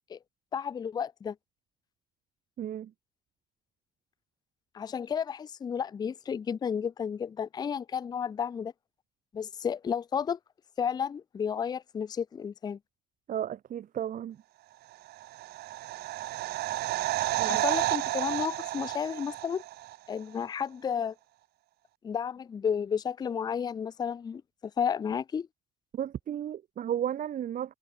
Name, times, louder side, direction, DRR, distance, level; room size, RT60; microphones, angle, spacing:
voice 1, 0.5-1.4 4.7-8.7 9.3-10.4 10.8-12.8 17.4-19.6 20.1-21.1 22.0-24.4 24.8-25.5, left 7 dB, 25° left, 0.4 m, -32 dB
voice 2, 2.6-2.9 13.3-14.4 17.4-17.6 25.9-27.7, right 10 dB, 55° right, 2.0 m, -34 dB
sound 1, 15.1-20.0 20.2-20.3, right 17 dB, 70° right, 0.6 m, -31 dB
cardioid pair, 110°, 17 cm